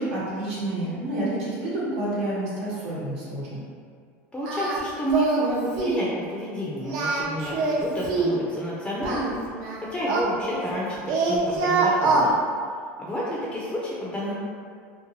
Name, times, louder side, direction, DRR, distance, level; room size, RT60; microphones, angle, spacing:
voice 1, 0.0-3.6, right 1 dB, 85° right, -7 dB, 1.0 m, -29 dB
voice 2, 4.3-9.3 9.9-12.3 13.0-14.3, equal, 10° left, -6 dB, 0.4 m, -30 dB
Singing, 4.4-4.8 5.1-5.5 5.8-6.1 6.8-8.4 9.0-10.8 11.1-12.3, right 3 dB, 65° right, 0.5 m, -24 dB
2.6 x 2.2 x 2.9 m, 2.1 s
supercardioid pair, 115°, 7 cm